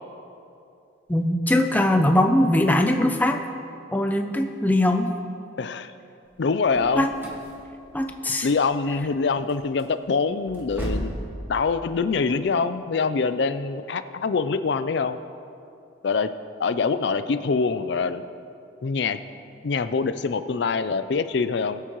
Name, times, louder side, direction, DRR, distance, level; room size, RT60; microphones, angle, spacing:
voice 1, 1.1-3.4 3.9-5.1 7.0-7.1 7.9-8.5, left 1 dB, 10° left, 5 dB, 0.5 m, -21 dB
voice 2, 5.6-5.9 6.4-7.1 8.4-11.1 11.5-15.2 16.0-16.3 16.6-18.2 18.8-19.2 19.6-21.8, left 4 dB, 65° left, 11 dB, 0.4 m, -24 dB
sound 1, 6.3-11.2, equal, 10° right, 1.6 m, -36 dB
21.5 x 8.3 x 3.1 m, 2.6 s
head